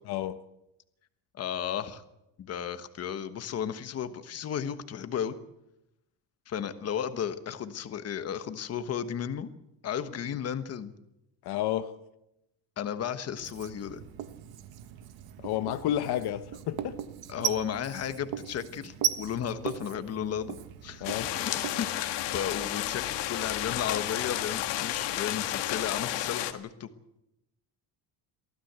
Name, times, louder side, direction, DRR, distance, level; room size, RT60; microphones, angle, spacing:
voice 1, 0.1-0.5 11.4-12.0 15.4-17.0 21.0-21.3, left 12 dB, 65° left, 1.1 m, -31 dB
voice 2, 1.4-2.0 2.4-5.4 6.5-9.5 9.8-10.9 12.8-14.0 17.3-20.5 20.8-21.1 21.4-26.9, left 8 dB, 35° left, 1.3 m, -34 dB
Writing, 13.4-21.9, right 11 dB, 60° right, 1.4 m, -37 dB
sound 1, 21.0-26.5, left 13 dB, 85° left, 1.8 m, -32 dB
23.5 x 15.5 x 8.2 m
cardioid pair, 175°, 41 cm